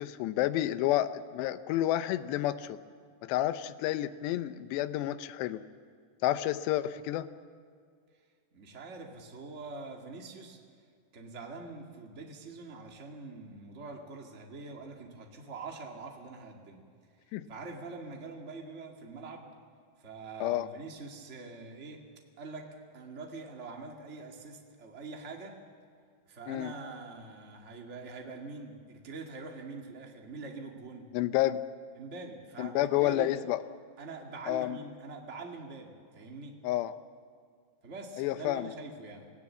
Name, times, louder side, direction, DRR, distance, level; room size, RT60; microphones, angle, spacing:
voice 1, 0.0-2.8 3.2-5.6 6.2-7.3 17.3-17.5 20.4-20.7 26.5-26.7 31.1-31.6 32.6-33.6 34.5-34.8 36.6-36.9 38.2-38.7, left 14 dB, 80° left, 12 dB, 2.8 m, -30 dB
voice 2, 8.5-10.6 11.1-16.8 17.5-19.5 20.0-22.1 22.4-25.6 26.3-31.1 32.0-33.3 34.0-36.6 37.8-39.3, right 3 dB, 40° right, 1 dB, 1.0 m, -44 dB
27.5 x 17.5 x 7.5 m, 2.1 s
omnidirectional pair, 5.2 m